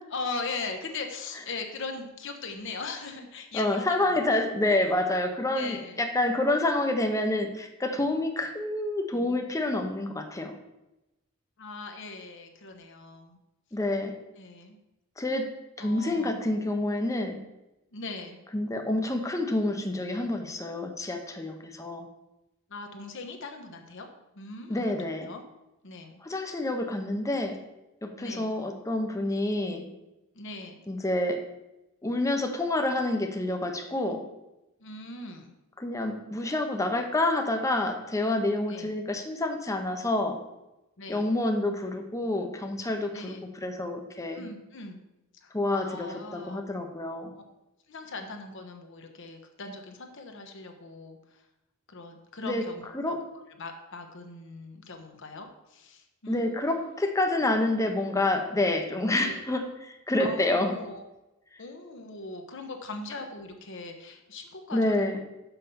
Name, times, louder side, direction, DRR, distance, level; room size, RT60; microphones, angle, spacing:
voice 1, 0.1-4.4 5.5-6.0 11.6-13.4 14.4-14.8 15.8-16.4 17.9-18.4 22.7-24.9 25.2-25.4 25.8-26.1 28.2-28.6 30.3-30.8 34.8-35.5 38.7-38.9 41.0-41.3 43.1-43.5 44.3-45.0 45.4-46.7 47.3-47.4 47.9-51.5 51.9-56.5 59.2-59.4 60.2-61.0 61.6-65.0, left 3 dB, 60° left, 4 dB, 1.0 m, -40 dB
voice 2, 3.5-10.5 13.7-14.2 15.2-15.5 15.8-17.4 18.5-22.1 24.7-25.3 26.2-27.6 28.0-29.9 30.9-31.4 32.0-34.2 35.8-40.4 41.1-43.4 43.6-44.4 45.5-47.3 52.4-52.7 52.9-53.2 56.3-60.7 64.7-65.2, left 2 dB, 15° left, 4 dB, 0.8 m, -28 dB
5.7 x 5.5 x 6.9 m, 0.95 s
head